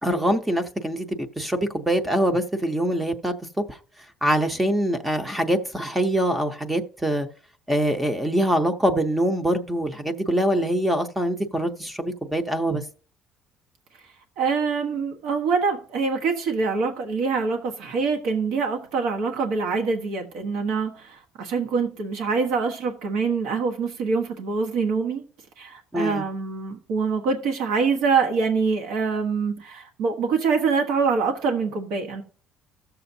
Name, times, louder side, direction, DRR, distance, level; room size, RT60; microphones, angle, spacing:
voice 1, 0.0-1.1 1.4-3.3 3.7-3.8 4.2-7.3 7.7-12.8 25.9-26.2, right 1 dB, 10° right, 0.6 m, -24 dB
voice 2, 14.4-25.2 25.6-32.2, right 5 dB, 85° right, 1.2 m, -25 dB
15.5 x 6.8 x 2.7 m
cardioid pair, 150°, 0 cm